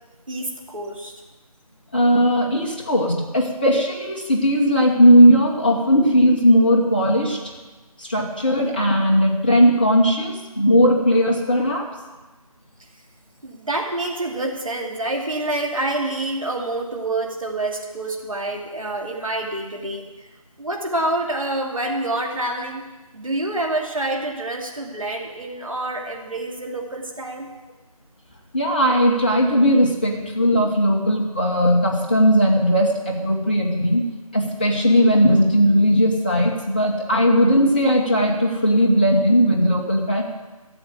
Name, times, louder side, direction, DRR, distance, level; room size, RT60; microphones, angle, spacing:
voice 1, 0.3-1.1 13.4-20.0 20.6-22.8 23.1-27.5, right 2 dB, 60° right, 1 dB, 2.5 m, -27 dB
voice 2, 1.9-7.4 8.0-11.9 28.5-34.1 34.3-40.2, equal, 15° left, -3 dB, 1.3 m, -17 dB
13.5 x 8.1 x 8.1 m, 1.2 s
figure-of-eight pair, 165°, 19 cm